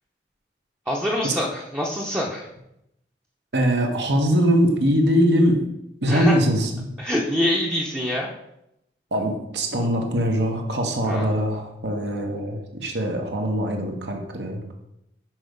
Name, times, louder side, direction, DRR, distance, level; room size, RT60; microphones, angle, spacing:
voice 1, 0.9-2.5 6.1-6.3 7.0-8.3 11.0-11.3, left 1 dB, 10° right, -3 dB, 0.7 m, -25 dB
voice 2, 3.5-5.6 6.0-6.9 9.1-14.6, equal, 75° right, 2 dB, 1.3 m, -22 dB
6.1 x 4.7 x 5.2 m, 0.82 s
head